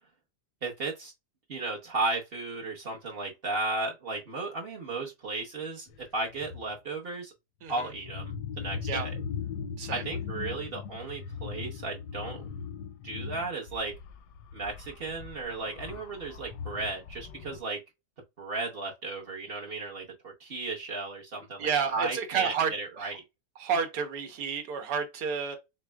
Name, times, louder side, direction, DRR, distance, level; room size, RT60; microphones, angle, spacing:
voice 1, 0.6-1.1 1.5-7.3 7.7-9.1 9.9-12.5 13.0-13.9 14.5-17.8 18.4-23.2, right 3 dB, 45° right, 0.9 m, -35 dB
sound 1, 5.9-6.0 6.3-6.7 7.7-17.6, left 6 dB, 85° left, 1.2 m, -39 dB
voice 2, 21.6-22.7 23.0-23.1 23.6-25.6, right 6 dB, 85° right, 1.5 m, -30 dB
6.1 x 2.1 x 2.2 m
omnidirectional pair, 1.7 m